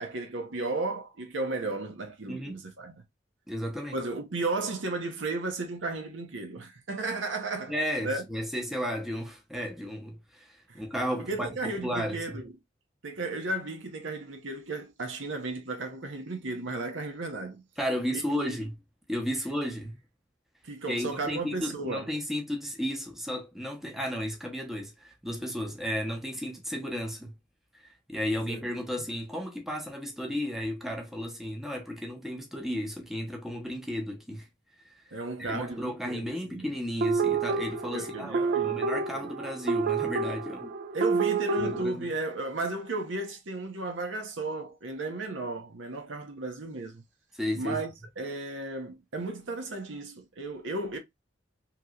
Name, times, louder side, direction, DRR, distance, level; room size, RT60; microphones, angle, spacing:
voice 1, 0.0-3.0 3.9-7.7 8.0-8.2 10.7-10.8 11.2-12.5 13.0-17.6 18.1-18.5 20.6-22.1 28.5-28.6 35.1-36.7 37.9-38.8 39.1-39.3 40.9-47.0 47.5-51.0, right 2 dB, 80° right, 0.8 m, -34 dB
voice 2, 2.3-2.6 3.5-4.0 7.7-12.4 17.8-18.8 19.1-20.0 20.9-27.4 27.7-34.5 35.4-40.7 41.6-42.1 47.4-47.8, equal, ahead, 0.7 m, -34 dB
sound 1, 37.0-41.8, right 4 dB, 55° right, 0.3 m, -28 dB
2.9 x 2.9 x 2.3 m
head